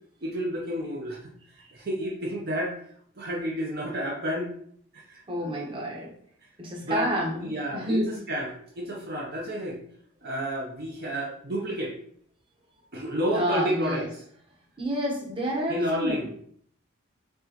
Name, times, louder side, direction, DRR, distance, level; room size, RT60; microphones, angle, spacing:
voice 1, 0.2-2.7 3.2-4.5 4.9-5.2 6.8-9.8 10.2-11.9 12.9-14.2 15.7-16.3, equal, 45° right, -2 dB, 0.7 m, -31 dB
voice 2, 5.3-6.1 6.6-8.1 13.3-14.1 14.8-16.3, equal, 25° right, -2 dB, 1.0 m, -29 dB
4.6 x 3.8 x 2.9 m, 0.63 s
head